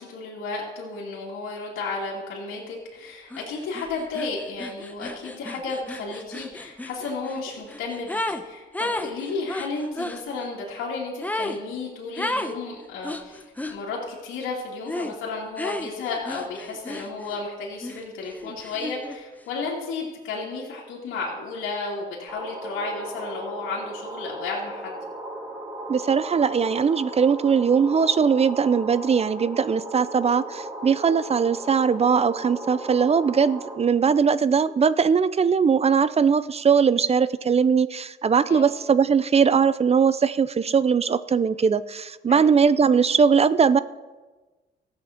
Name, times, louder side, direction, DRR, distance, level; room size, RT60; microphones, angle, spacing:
voice 1, 0.0-25.0 38.5-38.7 42.3-42.5, left 3 dB, 85° left, -5 dB, 2.5 m, -33 dB
sound 1, 3.3-3.5 3.7-8.4 8.7-10.2 11.2-11.6 12.2-12.6 13.0-13.8 14.9-15.2 15.6-17.4 17.8-19.2, left 1 dB, 10° left, 0.8 m, -33 dB
sound 2, 22.3-33.7, right 1 dB, 15° right, 4.5 m, -36 dB
voice 2, 25.9-43.8, right 6 dB, 30° right, 16 dB, 0.5 m, -20 dB
14.5 x 7.9 x 5.8 m, 1.3 s
cardioid pair, 90°, 20 cm